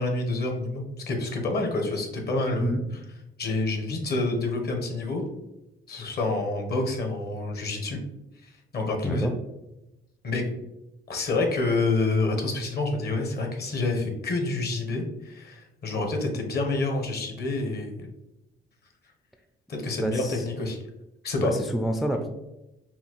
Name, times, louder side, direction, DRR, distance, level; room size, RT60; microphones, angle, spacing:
voice 1, 0.0-2.7 3.4-5.2 5.9-8.0 8.4-9.3 10.2-10.4 11.1-18.1 19.7-20.8 21.2-21.5, left 2 dB, 55° left, 3 dB, 1.0 m, -28 dB
voice 2, 20.0-20.4 21.4-22.3, right 1 dB, ahead, 5 dB, 0.3 m, -28 dB
5.5 x 2.3 x 3.0 m, 0.94 s
cardioid pair, 90°, 20 cm